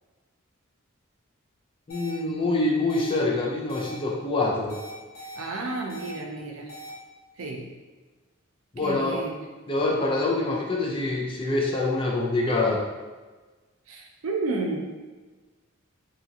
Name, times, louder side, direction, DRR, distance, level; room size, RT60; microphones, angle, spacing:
sound 1, 1.9-2.1 2.9-3.1 3.7-3.9 4.7-5.4 5.9-6.1 6.7-6.9, equal, 85° left, 0.8 m, -41 dB
voice 1, 1.9-4.8 8.7-9.2 9.7-12.8, left 2 dB, 25° left, -2 dB, 0.4 m, -25 dB
voice 2, 5.4-6.7 7.4-7.6 8.8-9.4 13.9-14.8, right 3 dB, 85° right, 0 dB, 0.5 m, -31 dB
2.7 x 2.5 x 2.8 m, 1.3 s
head